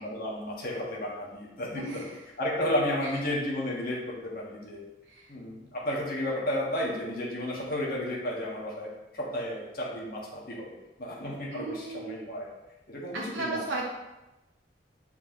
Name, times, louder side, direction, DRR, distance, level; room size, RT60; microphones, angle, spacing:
voice 1, 0.0-2.0 2.4-4.8 5.3-8.9 9.1-10.7 11.0-12.5 12.9-13.8, left 1 dB, 50° left, -4 dB, 1.6 m, -32 dB
voice 2, 1.7-2.2 3.0-3.1 5.1-5.3 11.5-12.2 13.1-13.8, right 3 dB, 85° right, -2 dB, 0.8 m, -35 dB
7.4 x 4.6 x 3.0 m, 0.98 s
head